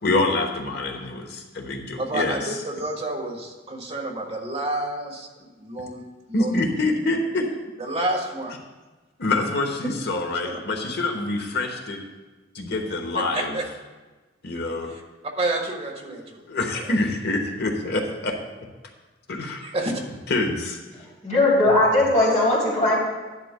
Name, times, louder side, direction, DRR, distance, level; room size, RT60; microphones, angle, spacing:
voice 1, 0.0-2.6 6.3-7.5 9.2-12.0 12.5-13.6 14.4-14.9 16.0-16.2 16.5-18.4 19.3-19.6 20.3-20.8, left 2 dB, 60° left, 3 dB, 1.1 m, -26 dB
voice 2, 2.0-6.0 6.3-6.7 7.8-8.6 10.3-10.6 13.1-13.6 14.9-15.0 15.4-17.0 19.6-19.9, right 2 dB, 35° right, 0 dB, 1.5 m, -30 dB
voice 3, 21.2-22.9, left 2 dB, 40° left, -5 dB, 3.1 m, -19 dB
11.5 x 11.0 x 2.2 m, 1.2 s
head